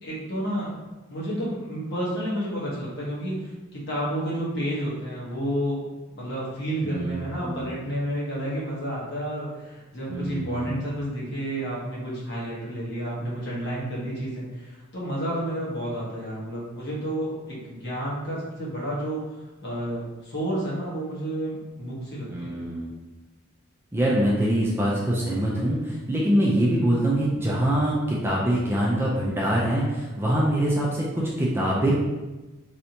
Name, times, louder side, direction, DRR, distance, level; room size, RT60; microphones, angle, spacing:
voice 1, 0.0-0.7 1.1-5.8 6.2-19.2 19.6-22.6, right 1 dB, 55° left, -7 dB, 1.2 m, -30 dB
voice 2, 6.8-7.8 10.1-10.8 22.3-22.9 23.9-31.9, right 1 dB, 10° right, -5 dB, 0.4 m, -24 dB
3.3 x 2.7 x 2.8 m, 1.1 s
head